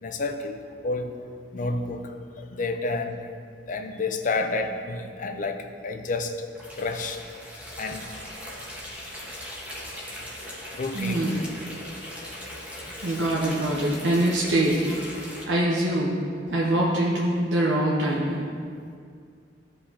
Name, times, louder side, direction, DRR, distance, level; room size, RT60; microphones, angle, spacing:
voice 1, 0.0-1.1 1.5-2.0 2.4-3.2 3.7-6.4 6.8-7.2 7.8-8.0 10.7-11.2, left 3 dB, 45° left, 6 dB, 0.6 m, -29 dB
sound 1, 6.5-15.4, equal, 10° right, 1.3 m, -39 dB
voice 2, 10.9-11.4 13.0-15.2 15.5-16.2 16.5-18.4, right 1 dB, 80° right, -5 dB, 1.0 m, -24 dB
14.0 x 5.1 x 2.9 m, 2.2 s
head